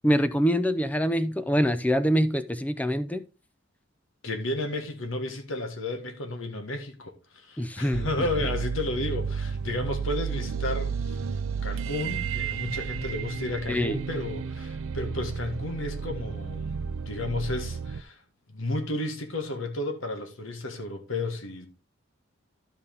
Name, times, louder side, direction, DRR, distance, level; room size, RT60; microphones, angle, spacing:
voice 1, 0.0-3.2 7.6-8.1 13.7-14.0, equal, 5° left, 0.5 m, -25 dB
voice 2, 4.2-11.2 11.6-18.2 18.5-21.7, left 2 dB, 80° left, 1.6 m, -32 dB
sound 1, 7.9-18.0, right 6 dB, 90° right, 0.5 m, -32 dB
13.0 x 5.5 x 3.5 m
head